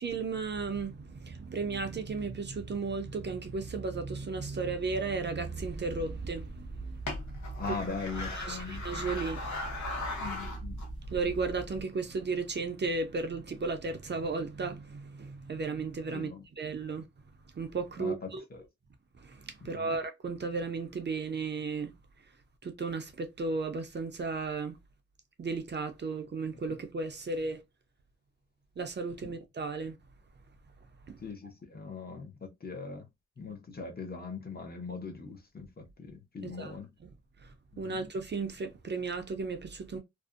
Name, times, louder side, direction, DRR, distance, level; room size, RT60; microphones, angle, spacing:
voice 1, 0.0-7.7 8.2-10.3 11.1-16.3 16.6-17.1 17.5-18.4 19.2-21.9 22.6-24.8 25.4-27.6 28.8-30.0 31.1-31.2 36.4-37.1 37.4-37.5 37.8-40.0, right 4 dB, 40° right, 0.5 m, -35 dB
sound 1, 5.6-11.8, equal, 80° left, 0.7 m, -38 dB
voice 2, 7.6-8.9 10.2-10.8 16.1-16.4 18.0-18.3 19.6-19.9 29.2-29.3 31.2-33.1 33.4-36.9 37.9-38.0, left 4 dB, 35° left, 0.7 m, -40 dB
2.5 x 2.0 x 2.4 m
wide cardioid pair, 105°, 29 cm